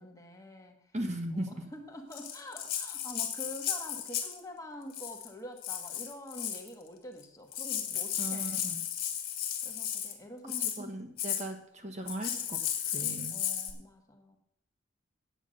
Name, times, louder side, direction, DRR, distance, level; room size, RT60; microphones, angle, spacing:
voice 1, 0.0-0.9 1.3-8.6 9.6-11.0 13.3-14.4, left 1 dB, 20° left, 3 dB, 1.4 m, -46 dB
voice 2, 0.9-1.5 8.2-8.8 10.8-12.6 12.9-13.4, right 1 dB, 35° right, 4 dB, 1.3 m, -37 dB
Rattle (instrument), 2.1-4.4 4.9-5.3 5.6-6.7 7.2-7.3 7.5-10.1 10.5-10.8 11.2-11.4 12.1-13.7, left 10 dB, 50° left, 1.7 m, -34 dB
9.2 x 8.2 x 6.4 m, 0.73 s
head